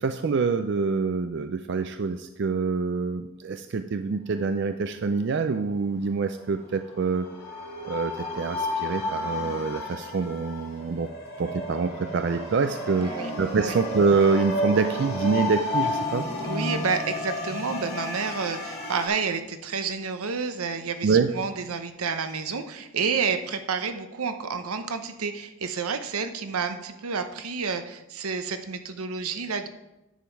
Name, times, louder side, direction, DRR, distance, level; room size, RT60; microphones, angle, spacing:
voice 1, 0.0-7.3 7.8-11.1 11.4-16.3 21.0-21.3, right 4 dB, 50° right, 9 dB, 0.4 m, -26 dB
sound 1, 6.7-19.1, left 1 dB, 45° left, 2.5 m, -32 dB
voice 2, 16.4-29.7, right 5 dB, 85° right, 8 dB, 0.8 m, -30 dB
10.0 x 7.3 x 4.6 m, 0.95 s
head